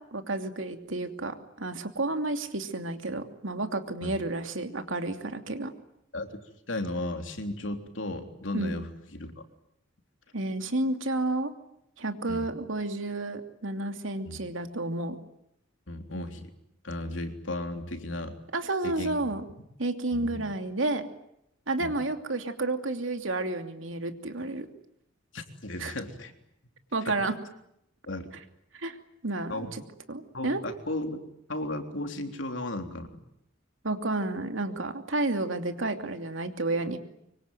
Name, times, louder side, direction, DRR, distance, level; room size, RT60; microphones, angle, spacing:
voice 1, 0.0-5.7 8.5-8.8 10.3-11.5 12.0-15.2 18.5-19.4 19.8-21.1 21.7-24.7 25.8-25.9 26.9-27.3 28.7-29.0 29.2-29.8 30.1-30.6 33.8-37.0, right 2 dB, 75° right, 6 dB, 2.8 m, -31 dB
voice 2, 6.7-9.3 12.3-12.5 14.3-14.4 15.9-16.5 16.8-18.4 18.8-19.3 20.1-20.4 21.8-21.9 25.3-26.3 27.1-27.2 28.1-28.3 29.5-29.7 30.3-33.1, left 1 dB, 70° left, 5 dB, 3.5 m, -35 dB
25.5 x 24.0 x 9.3 m, 0.78 s
head